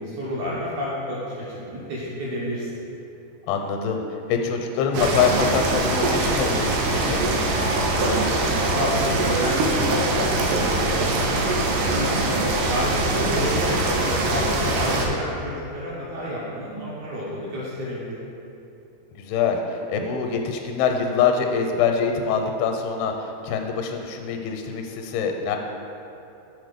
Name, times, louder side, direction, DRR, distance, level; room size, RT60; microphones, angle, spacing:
voice 1, 0.0-2.8 7.9-12.4 12.7-18.2, equal, 70° right, -7 dB, 1.9 m, -30 dB
voice 2, 3.5-4.0 4.3-7.2 14.3-14.8 19.1-25.6, left 6 dB, 85° left, 4 dB, 2.5 m, -24 dB
sound 1, 4.9-15.1, right 2 dB, 90° right, 2.7 m, -23 dB
6.5 x 4.1 x 5.0 m, 2.8 s
omnidirectional pair, 4.5 m